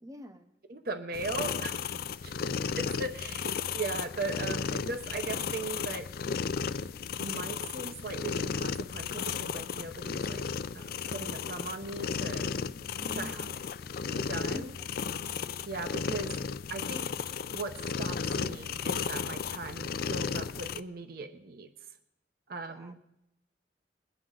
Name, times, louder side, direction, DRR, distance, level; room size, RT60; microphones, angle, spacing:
voice 1, 0.0-0.5 13.0-13.7 14.5-15.1 22.7-23.1, equal, 20° right, 8 dB, 0.6 m, -47 dB
voice 2, 0.7-1.8 2.2-2.3 2.8-6.1 7.2-10.5 10.7-12.5 13.1-13.5 14.1-14.7 15.7-16.4 16.7-17.1 17.5-21.7 22.5-23.0, right 3 dB, 55° right, 8 dB, 0.8 m, -38 dB
sound 1, 1.1-20.8, left 6 dB, 55° left, 0.4 m, -34 dB
21.0 x 9.3 x 3.9 m, 0.86 s
head